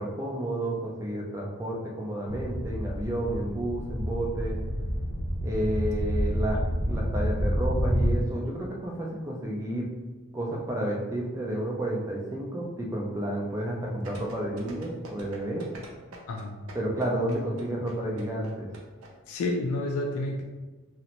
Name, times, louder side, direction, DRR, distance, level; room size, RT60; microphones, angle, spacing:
voice 1, 0.0-4.6 5.4-6.6 6.9-9.9 10.3-15.6 16.7-18.7, right 1 dB, 15° right, -2 dB, 0.3 m, -31 dB
sound 1, 2.3-8.2, equal, 50° left, 0.9 m, -29 dB
sound 2, 14.0-19.1 19.4-19.5, right 1 dB, 75° right, 0.5 m, -45 dB
voice 2, 16.3-16.6 19.3-20.4, left 2 dB, 85° left, 2 dB, 0.3 m, -30 dB
2.5 x 2.0 x 2.9 m, 1.3 s
head